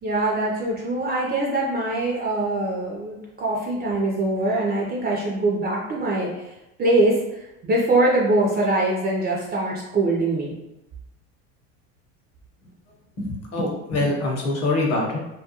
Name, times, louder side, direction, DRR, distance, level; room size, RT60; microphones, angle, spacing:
voice 1, 0.0-6.5 6.8-10.5, right 2 dB, 25° right, -3 dB, 0.4 m, -23 dB
voice 2, 13.2-15.2, left 2 dB, 35° left, -1 dB, 0.9 m, -24 dB
2.3 x 2.2 x 2.8 m, 0.92 s
supercardioid pair, 100°, 41 cm